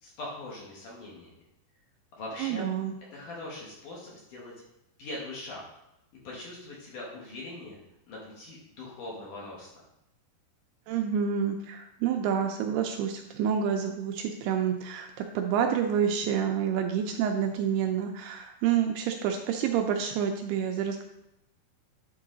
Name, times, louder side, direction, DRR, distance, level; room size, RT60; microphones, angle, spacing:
voice 1, 0.0-1.3 2.2-2.7 3.1-4.5 5.0-5.6 6.2-7.8 8.1-9.8, left 2 dB, 60° left, -4 dB, 2.6 m, -41 dB
voice 2, 2.4-2.9 10.9-21.0, right 8 dB, 80° right, 4 dB, 2.4 m, -28 dB
9.9 x 4.6 x 3.9 m, 0.89 s
omnidirectional pair, 4.9 m